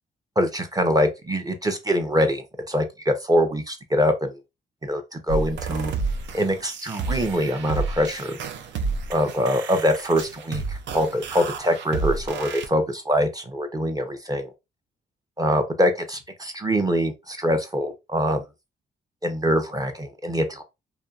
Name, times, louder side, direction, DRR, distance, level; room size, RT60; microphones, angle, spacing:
voice 1, 0.4-4.3 4.8-5.0 5.3-5.9 6.3-8.4 9.1-14.5 15.4-18.4 19.2-20.6, equal, 20° right, 0.6 m, -24 dB
sound 1, 5.3-12.7, right 4 dB, 70° right, 0.5 m, -30 dB
2.6 x 2.2 x 2.3 m
cardioid pair, 70°, 19 cm